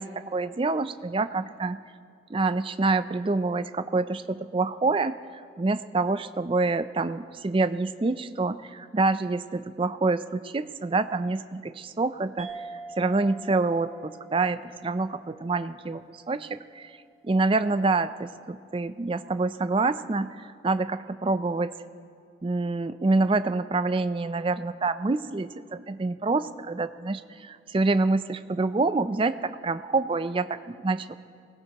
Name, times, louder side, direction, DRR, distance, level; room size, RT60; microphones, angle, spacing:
voice 1, 0.0-1.8 2.3-5.2 5.6-12.5 13.0-16.9 17.2-21.7 22.4-31.1, right 3 dB, 25° right, 12 dB, 0.4 m, -27 dB
sound 1, 12.4-17.3, right 2 dB, ahead, 0.7 m, -45 dB
23.5 x 18.5 x 2.9 m, 2.3 s
head